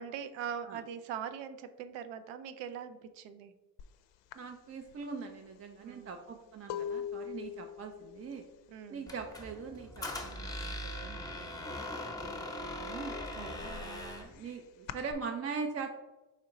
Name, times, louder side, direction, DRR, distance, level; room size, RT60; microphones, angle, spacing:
voice 1, 0.0-3.5 5.8-6.2 8.7-9.1 13.4-13.7, right 8 dB, 80° right, 10 dB, 0.6 m, -42 dB
sound 1, 3.8-4.0 4.3-10.0 10.2-10.8 11.0-12.2 12.6-15.1, left 9 dB, 70° left, 0.5 m, -43 dB
voice 2, 4.3-8.5 8.9-12.3 12.6-13.1 13.6-16.0, right 5 dB, 35° right, 4 dB, 0.4 m, -42 dB
Squeak, 9.1-14.3, left 1 dB, 10° left, 0.7 m, -40 dB
4.5 x 2.8 x 3.7 m, 1.1 s
supercardioid pair, 65°, 46 cm